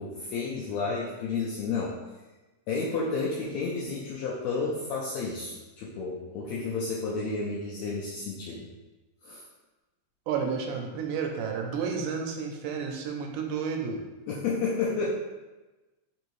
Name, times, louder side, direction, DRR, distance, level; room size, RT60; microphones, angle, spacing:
voice 1, 0.0-2.0 2.7-8.7 9.2-9.4 14.3-15.1, left 4 dB, 85° left, -4 dB, 1.5 m, -31 dB
voice 2, 10.3-14.0, right 6 dB, 85° right, 3 dB, 2.0 m, -31 dB
4.9 x 2.7 x 3.0 m, 1.1 s
omnidirectional pair, 3.6 m